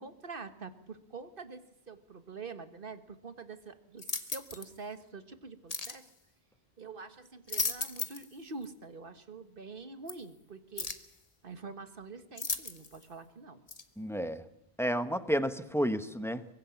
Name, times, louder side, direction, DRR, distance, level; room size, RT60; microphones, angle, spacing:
voice 1, 0.0-6.1 6.8-10.9 11.4-13.6, right 4 dB, 60° right, 10 dB, 1.7 m, -46 dB
sound 1, 4.0-4.7 5.7-6.0 7.3-8.3 8.6-8.7 10.1-10.2 10.8-11.1 12.4-13.0 13.7-13.8, left 4 dB, 35° left, 1.3 m, -36 dB
voice 2, 14.0-14.4 14.8-16.5, equal, 5° left, 10 dB, 1.1 m, -31 dB
24.0 x 21.5 x 7.2 m, 0.78 s
omnidirectional pair, 1.1 m